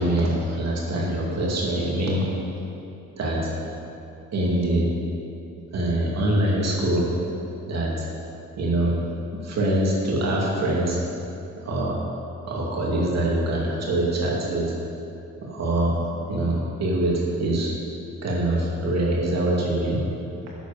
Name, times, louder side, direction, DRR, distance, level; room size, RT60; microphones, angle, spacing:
voice 1, 0.0-2.2 3.2-3.5 4.3-4.9 5.7-7.1 7.7-8.1 8.6-8.9 9.4-11.0 11.6-12.0 12.5-14.7 15.4-15.9 16.3-17.7 18.2-20.0, right 1 dB, 60° right, -3 dB, 2.5 m, -24 dB
10.0 x 8.1 x 5.2 m, 2.8 s
cardioid pair, 90°, 30 cm